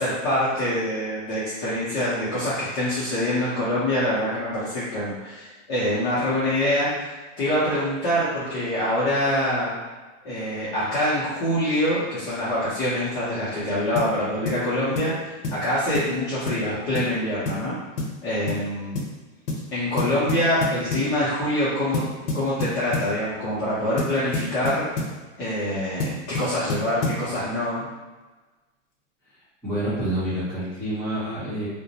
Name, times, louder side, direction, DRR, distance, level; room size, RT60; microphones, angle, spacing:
voice 1, 0.0-7.1 7.4-9.7 10.2-17.7 18.2-19.0 19.7-22.0 22.3-24.9 25.4-27.9, left 1 dB, 25° left, -12 dB, 0.7 m, -25 dB
sound 1, 14.0-14.2 14.5-14.6 15.0-15.2 15.4-15.6 15.9-16.2 16.5-16.6 16.9-17.1 17.5-17.7 18.0-18.2 18.5-18.6 18.9-19.1 19.5-19.7 20.0-21.1 21.9-23.1 24.0-25.2 26.0-27.2, left 2 dB, 75° left, 0.9 m, -28 dB
voice 2, 29.6-31.7, right 1 dB, 5° left, -13 dB, 1.0 m, -27 dB
2.4 x 2.1 x 2.8 m, 1.2 s
supercardioid pair, 150°, 38 cm